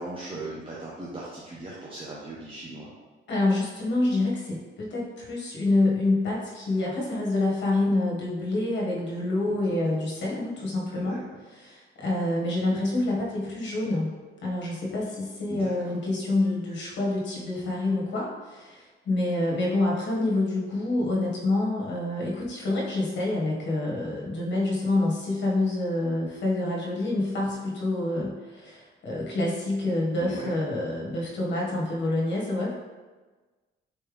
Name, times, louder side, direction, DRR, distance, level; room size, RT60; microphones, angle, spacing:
voice 1, 0.0-2.9 9.4-9.7 10.9-11.2 15.5-15.9 30.2-30.5, right 2 dB, 25° right, -6 dB, 0.8 m, -38 dB
voice 2, 3.3-11.2 11.5-32.7, left 2 dB, 65° left, -3 dB, 1.4 m, -27 dB
4.4 x 3.3 x 3.4 m, 1.3 s
cardioid pair, 90°, 20 cm